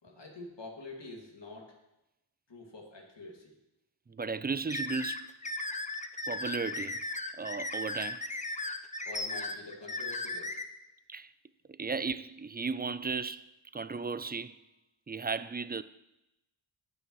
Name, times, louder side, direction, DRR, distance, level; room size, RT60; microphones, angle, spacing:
voice 1, 0.0-1.8 2.5-3.5 9.1-10.6, left 2 dB, 60° left, 2.4 m, -46 dB
voice 2, 4.1-5.3 6.3-7.0 7.3-8.3 11.1-11.3 11.7-13.4 13.7-14.6 15.1-15.8, right 4 dB, 20° right, 0.3 m, -35 dB
sound 1, 4.7-10.6, left 2 dB, 15° left, 0.6 m, -36 dB
18.0 x 6.3 x 3.1 m
wide cardioid pair, 50°, 49 cm